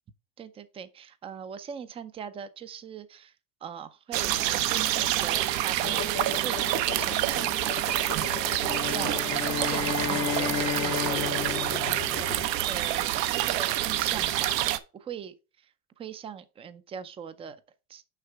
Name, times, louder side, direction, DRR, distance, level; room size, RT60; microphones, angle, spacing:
voice 1, 0.4-3.3 3.6-6.5 7.0-9.4 9.7-11.4 12.6-14.7 14.9-15.3 16.0-17.6 17.9-18.0, right 7 dB, 15° right, 0.4 m, -41 dB
sound 1, 4.1-14.8, right 14 dB, 75° right, 0.9 m, -27 dB
sound 2, 5.8-12.5, left 13 dB, 50° left, 0.9 m, -38 dB
sound 3, 8.6-13.0, left 9 dB, 80° left, 1.2 m, -33 dB
6.6 x 5.8 x 4.5 m
supercardioid pair, 125°, 49 cm